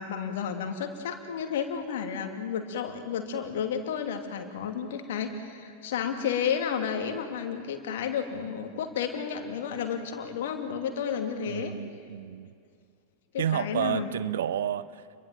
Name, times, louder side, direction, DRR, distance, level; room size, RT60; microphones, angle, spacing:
voice 1, 0.0-11.7 13.3-14.1, left 7 dB, 55° left, 5 dB, 2.6 m, -32 dB
voice 2, 11.4-12.5 13.4-15.0, right 10 dB, 60° right, 17 dB, 0.7 m, -30 dB
29.0 x 23.0 x 7.5 m, 2.2 s
figure-of-eight pair, 90°, 0 cm